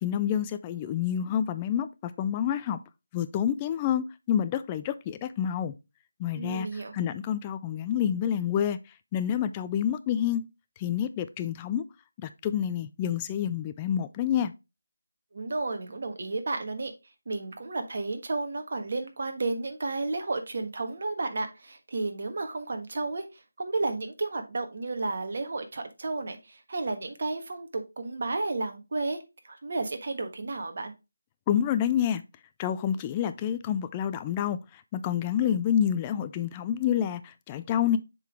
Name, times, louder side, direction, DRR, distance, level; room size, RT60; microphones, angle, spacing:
voice 1, 0.0-2.8 3.1-5.7 6.2-8.8 9.1-10.4 10.8-11.8 12.2-14.5 31.5-32.2 32.6-38.0, left 9 dB, 20° left, 0.3 m, -28 dB
voice 2, 6.3-6.9 15.3-16.9 17.3-29.2 29.4-30.9, right 3 dB, 55° right, 1.4 m, -32 dB
7.3 x 3.8 x 3.5 m
figure-of-eight pair, 165°, 0 cm